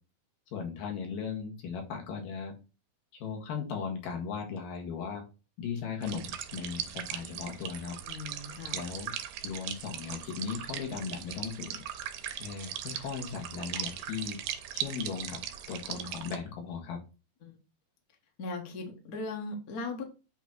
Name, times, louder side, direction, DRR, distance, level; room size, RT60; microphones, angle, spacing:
voice 1, 0.5-2.5 3.1-5.2 5.6-8.0 8.7-9.1 9.4-11.8 12.3-14.4 14.7-15.4 15.7-17.0, left 6 dB, 70° left, 2 dB, 3.1 m, -37 dB
sound 1, 6.0-16.4, right 10 dB, 80° right, 2.4 m, -39 dB
voice 2, 8.0-8.8 17.4-17.6 18.4-20.0, left 3 dB, 85° left, 2 dB, 0.8 m, -38 dB
8.2 x 3.0 x 5.9 m, 0.32 s
omnidirectional pair, 4.4 m